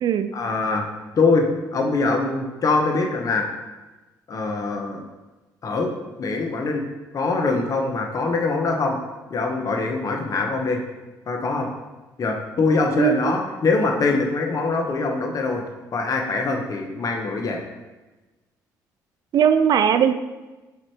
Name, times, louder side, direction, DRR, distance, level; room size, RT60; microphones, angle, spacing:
voice 1, 0.3-0.9 1.2-1.5 1.7-3.5 4.3-5.0 5.6-5.9 6.2-6.8 7.1-9.0 9.3-10.8 11.3-11.7 12.2-15.6 15.9-17.6, left 3 dB, 50° left, 2 dB, 1.1 m, -23 dB
voice 2, 13.0-13.3 19.3-20.1, right 8 dB, 60° right, 10 dB, 0.4 m, -19 dB
4.9 x 4.4 x 4.5 m, 1.2 s
supercardioid pair, 70°, 8 cm